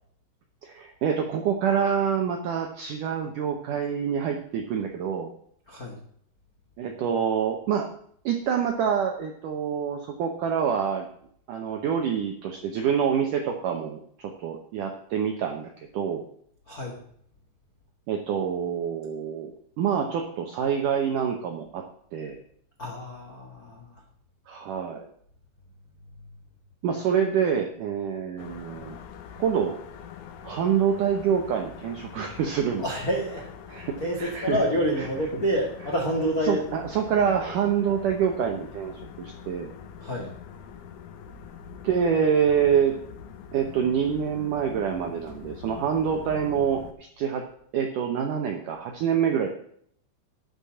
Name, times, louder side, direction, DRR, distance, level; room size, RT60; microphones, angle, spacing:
voice 1, 0.6-5.3 6.8-7.9 8.2-11.1 11.5-16.3 18.1-21.8 22.1-22.4 24.5-25.1 26.8-29.0 29.4-29.8 30.4-32.8 33.7-34.6 36.4-39.7 41.8-43.0 43.5-47.4 47.7-49.5, right 7 dB, 75° right, 4 dB, 1.9 m, -26 dB
voice 2, 5.7-6.0 16.7-17.0 22.8-23.9 32.8-33.5 34.0-36.6 40.0-40.3, equal, 65° left, -1 dB, 0.9 m, -28 dB
sound 1, 28.4-46.9, left 8 dB, 80° left, 1.8 m, -44 dB
11.5 x 5.7 x 8.4 m, 0.65 s
omnidirectional pair, 5.1 m